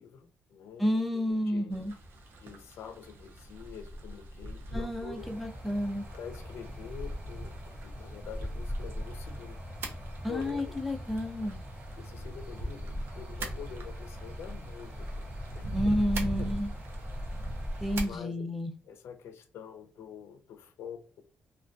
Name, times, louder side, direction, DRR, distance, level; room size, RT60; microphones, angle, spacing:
voice 1, 0.0-1.9 2.4-5.3 6.1-9.6 10.3-10.7 12.0-15.9 16.4-16.5 18.0-18.5 18.8-21.2, left 7 dB, 80° left, 8 dB, 0.4 m, -46 dB
voice 2, 0.8-1.9 4.7-6.1 10.2-11.6 15.7-16.7 17.8-18.7, equal, ahead, 4 dB, 0.4 m, -30 dB
sound 1, 1.7-18.2, right 1 dB, 60° right, 0.5 m, -41 dB
sound 2, 5.2-18.0, equal, 30° right, 0.8 m, -41 dB
2.2 x 2.2 x 2.5 m, 0.38 s
wide cardioid pair, 170°, 4 cm